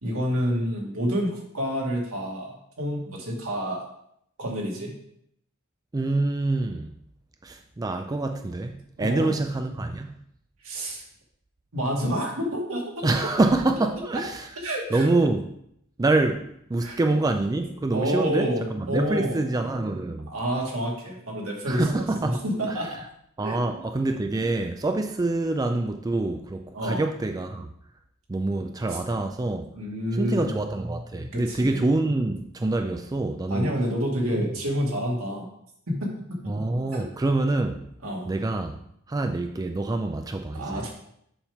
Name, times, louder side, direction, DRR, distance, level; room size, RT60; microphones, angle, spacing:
voice 1, 0.0-3.8 4.4-4.9 9.0-9.3 10.6-11.0 11.7-12.8 14.6-15.1 16.8-17.0 17.9-19.4 20.3-23.0 23.4-23.8 26.7-27.1 28.9-29.0 29.7-30.6 31.2-31.8 33.5-35.5 35.9-36.4 36.9-37.0 38.0-38.3 40.5-40.9, equal, 80° right, 1.9 m, -28 dB
voice 2, 5.9-7.0 7.4-10.2 13.0-14.5 14.9-15.4 16.0-20.3 21.7-22.9 23.4-27.7 28.3-29.7 30.1-33.7 34.3-34.5 36.5-37.9 38.3-40.8, right 2 dB, 15° right, 0.3 m, -26 dB
7.0 x 5.8 x 3.5 m
head